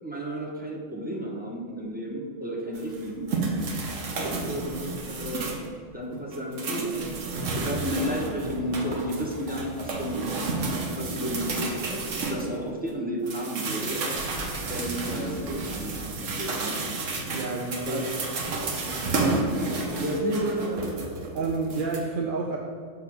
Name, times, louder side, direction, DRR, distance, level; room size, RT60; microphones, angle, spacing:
voice 1, 0.0-3.3 4.5-4.8 5.1-5.5 5.9-7.2 7.5-10.2 11.0-14.0 14.6-16.8 17.9-18.1 20.0-21.1, equal, 10° right, -2 dB, 0.7 m, -32 dB
sound 1, 2.8-5.7 6.1-12.9 13.3-22.0, right 3 dB, 75° right, 1.2 m, -31 dB
voice 2, 17.3-18.2 18.9-19.0 21.3-22.6, right 4 dB, 55° right, 0 dB, 0.6 m, -30 dB
6.5 x 3.7 x 5.9 m, 2.1 s
omnidirectional pair, 1.3 m